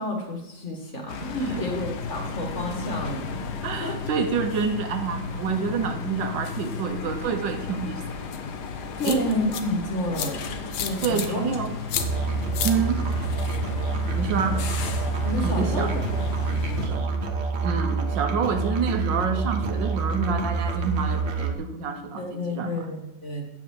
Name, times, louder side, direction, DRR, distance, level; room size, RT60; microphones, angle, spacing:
voice 1, 0.0-3.3 3.8-4.0 9.0-10.4 10.8-11.4 15.2-16.0 16.5-17.0 22.2-23.4, left 1 dB, 40° left, 1 dB, 2.0 m, -30 dB
sound 1, 1.1-16.9, left 5 dB, 65° left, 1.4 m, -34 dB
voice 2, 3.6-8.2 9.1-9.2 11.0-11.7 12.6-13.1 14.1-14.6 15.4-15.9 16.8-17.0 17.6-22.9, right 5 dB, 90° right, 7 dB, 1.7 m, -28 dB
sound 2, 8.3-8.4 9.0-9.6 10.1-10.3 10.7-11.3 11.9-12.1 12.5-12.7, left 9 dB, 90° left, 1.5 m, -29 dB
Musical instrument, 12.0-21.6, right 4 dB, 45° right, 1.0 m, -27 dB
7.7 x 6.1 x 7.2 m, 0.88 s
omnidirectional pair, 1.9 m